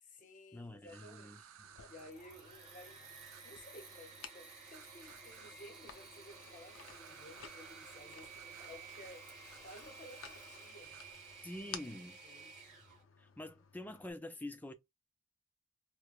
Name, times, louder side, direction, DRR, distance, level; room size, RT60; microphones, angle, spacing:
voice 1, 0.0-1.6 1.8-3.0 3.4-11.1 12.2-12.5, left 1 dB, 40° left, 0.7 m, -56 dB
voice 2, 0.5-1.4 11.4-12.2 13.2-14.7, left 1 dB, 10° left, 0.4 m, -46 dB
sound 1, 0.8-2.1 3.2-3.4 4.6-5.6 6.7-8.0 8.3-8.7 9.0-9.2 9.4-10.3 10.8-11.1, right 8 dB, 85° right, 0.4 m, -59 dB
sound 2, 1.6-14.1, left 7 dB, 75° left, 0.6 m, -56 dB
Engine / Mechanisms, 1.8-13.0, right 4 dB, 35° right, 1.5 m, -53 dB
4.6 x 2.1 x 2.4 m
head